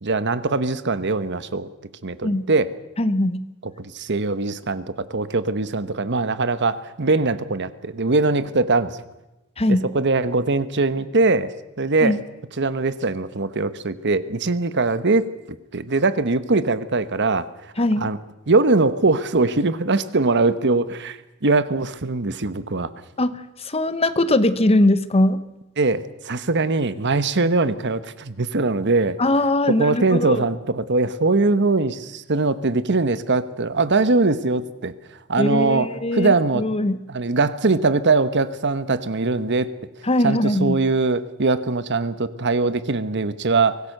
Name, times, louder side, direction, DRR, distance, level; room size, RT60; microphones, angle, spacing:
voice 1, 0.0-1.7 2.0-2.7 3.6-9.0 9.7-11.5 11.8-12.2 12.6-15.3 15.7-17.5 18.0-18.2 18.5-22.9 25.8-29.2 29.7-34.9 35.3-36.6 37.1-39.7 40.2-43.8, right 3 dB, 55° right, 13 dB, 1.1 m, -21 dB
voice 2, 3.0-3.4 9.6-9.9 12.0-12.2 17.8-18.1 23.2-25.4 29.2-30.4 35.4-37.0 40.0-40.8, left 1 dB, 30° left, 13 dB, 1.0 m, -21 dB
24.0 x 18.5 x 6.7 m, 0.97 s
head